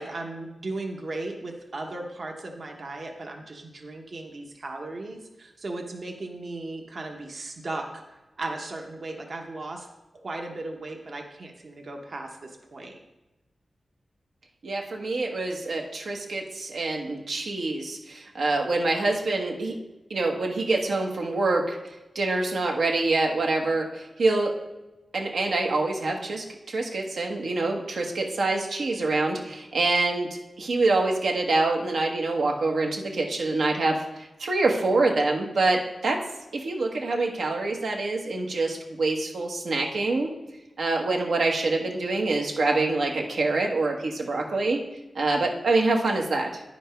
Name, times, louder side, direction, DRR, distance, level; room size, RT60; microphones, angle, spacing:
voice 1, 0.0-9.9 10.1-13.0, right 2 dB, 55° right, 2 dB, 1.0 m, -36 dB
voice 2, 14.6-19.7 20.1-21.8 22.1-24.5 25.1-30.3 30.6-36.2 36.5-40.3 40.8-44.8 45.1-46.6, right 3 dB, 80° right, 1 dB, 1.3 m, -25 dB
10.0 x 5.2 x 5.1 m, 1.0 s
wide cardioid pair, 105°, 0 cm